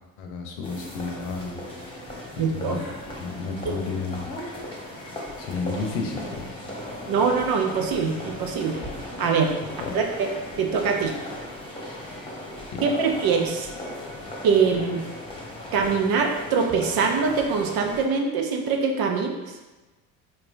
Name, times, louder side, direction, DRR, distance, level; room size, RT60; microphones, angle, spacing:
voice 1, 0.2-2.1 2.3-2.8 3.2-4.3 5.0-5.1 5.4-6.7 9.8-10.0 11.9-12.0 12.7-12.8, left 4 dB, 70° left, 3 dB, 0.8 m, -32 dB
sound 1, 0.6-18.0, left 1 dB, 10° left, 1.2 m, -37 dB
voice 2, 2.4-2.8 7.1-8.8 9.2-9.5 9.9-10.3 10.6-11.1 12.8-13.7 14.4-15.0 15.7-19.4, right 5 dB, 55° right, 3 dB, 0.7 m, -23 dB
4.4 x 3.1 x 2.6 m, 1.2 s
hypercardioid pair, 60°, 42 cm